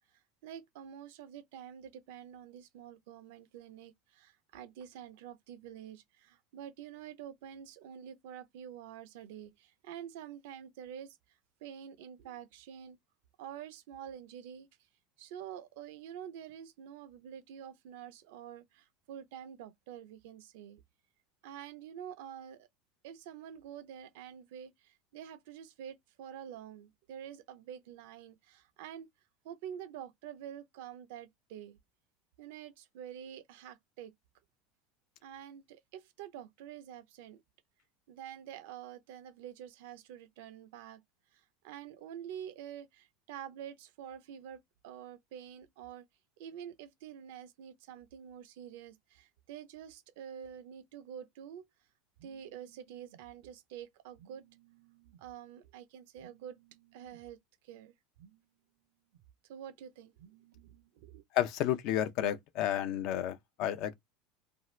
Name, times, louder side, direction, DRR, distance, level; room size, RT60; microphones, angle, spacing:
voice 1, 0.4-11.2 11.6-13.0 13.4-14.7 15.2-20.8 21.4-22.7 23.0-29.1 29.4-31.8 32.4-34.1 35.2-37.4 38.1-41.0 41.3-46.0 46.4-51.7 52.2-57.4 57.6-58.5 59.1-61.2, right 9 dB, 75° right, 0.6 m, -48 dB
voice 2, 61.3-63.9, left 11 dB, 60° left, 0.6 m, -31 dB
2.7 x 2.4 x 3.1 m
supercardioid pair, 115°, 0 cm